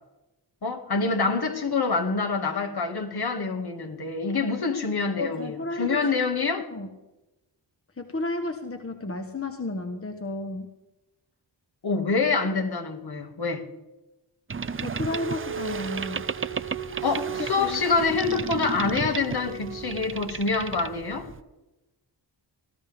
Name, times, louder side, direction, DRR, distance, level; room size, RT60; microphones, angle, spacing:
voice 1, 0.6-6.6 11.8-13.6 17.0-21.3, left 4 dB, 55° left, 3 dB, 2.1 m, -26 dB
voice 2, 5.2-6.0 6.7-6.9 8.0-10.7 14.8-16.3 17.2-17.3 17.6-17.8, left 2 dB, 30° left, 6 dB, 1.3 m, -32 dB
Boat Water vehicle, 14.5-21.4, right 5 dB, 30° right, 0.6 m, -34 dB
sound 1, 15.1-20.4, right 8 dB, 85° right, 0.8 m, -37 dB
18.0 x 13.0 x 3.6 m, 1.0 s
cardioid pair, 55°, 46 cm